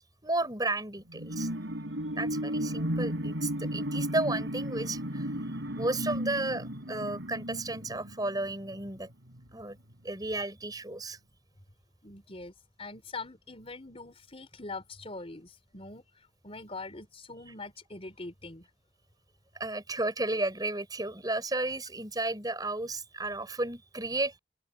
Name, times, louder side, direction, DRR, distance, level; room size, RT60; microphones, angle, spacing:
voice 1, 0.0-1.5 2.2-5.3 5.7-9.1 9.5-9.8 10.0-11.2 19.5-24.4, right 2 dB, 20° right, 6.7 m, -33 dB
sound 1, 1.1-8.9 9.3-9.4, equal, 75° right, 4.6 m, -34 dB
voice 2, 12.0-12.5 12.8-18.7, left 3 dB, 30° left, 4.1 m, -43 dB
open air
head